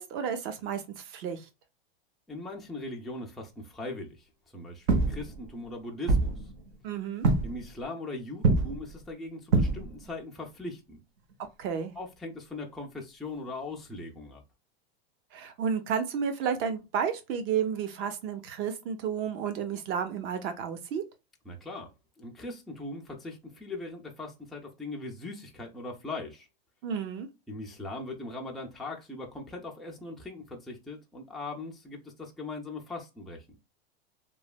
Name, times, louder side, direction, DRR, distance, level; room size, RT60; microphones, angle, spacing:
voice 1, 0.0-1.4 6.8-7.3 11.6-11.9 15.3-21.0 26.8-27.3, right 7 dB, 40° right, 0.7 m, -32 dB
voice 2, 2.3-4.3 4.5-6.3 7.4-11.0 12.0-14.4 21.5-21.9 22.2-26.5 27.5-33.6, left 2 dB, ahead, 0.3 m, -40 dB
sound 1, 4.9-5.6 6.1-6.8 7.2-7.7 8.4-9.0 9.5-10.1 11.3-11.4 13.5-13.6, right 3 dB, 70° right, 0.9 m, -26 dB
3.1 x 2.2 x 2.2 m
hypercardioid pair, 130°, 31 cm